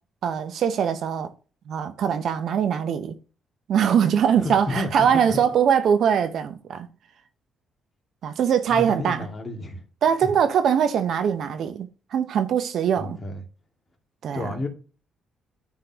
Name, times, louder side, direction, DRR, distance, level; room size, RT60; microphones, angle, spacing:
voice 1, 0.2-1.3 1.7-3.2 3.7-6.9 8.2-9.3 10.0-13.2 14.2-14.5, right 8 dB, 65° right, 0.8 m, -22 dB
voice 2, 4.4-5.4 8.7-9.8 10.2-10.3 13.0-13.4 14.3-14.7, left 2 dB, 30° left, 2.3 m, -31 dB
11.0 x 3.8 x 2.9 m
cardioid pair, 90°, 0 cm